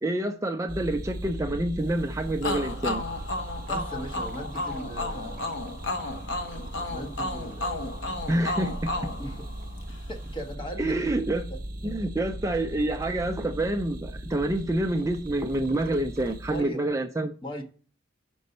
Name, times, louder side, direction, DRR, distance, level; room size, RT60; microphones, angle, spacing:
voice 1, 0.0-3.0 8.3-8.9 10.8-11.5 11.8-17.3, right 1 dB, 15° right, 0.4 m, -27 dB
sound 1, 0.7-16.6, right 1 dB, 50° right, 0.9 m, -39 dB
sound 2, 2.4-10.0, left 2 dB, 70° left, 1.1 m, -33 dB
voice 2, 3.7-5.6 6.9-8.0 9.2-9.5 10.1-11.1 11.5-11.6 16.5-16.9 17.4-17.6, right 1 dB, 25° left, 1.2 m, -38 dB
5.4 x 5.2 x 6.5 m
head